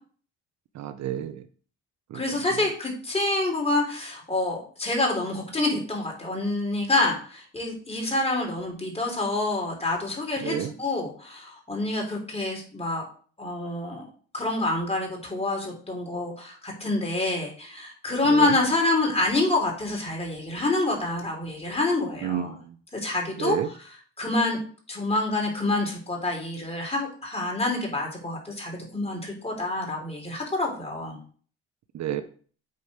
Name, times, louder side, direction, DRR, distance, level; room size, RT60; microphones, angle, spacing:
voice 1, 0.7-1.4 2.1-2.2 10.4-10.7 18.3-18.5 22.2-22.7 23.4-23.7 31.9-32.2, right 10 dB, 65° right, 11 dB, 0.7 m, -30 dB
voice 2, 2.1-13.1 13.4-14.1 14.3-22.6 22.9-23.8 24.2-24.6 24.9-31.2, left 2 dB, 20° left, 0 dB, 3.5 m, -27 dB
8.5 x 4.4 x 5.0 m, 0.44 s
cardioid pair, 90°, 30 cm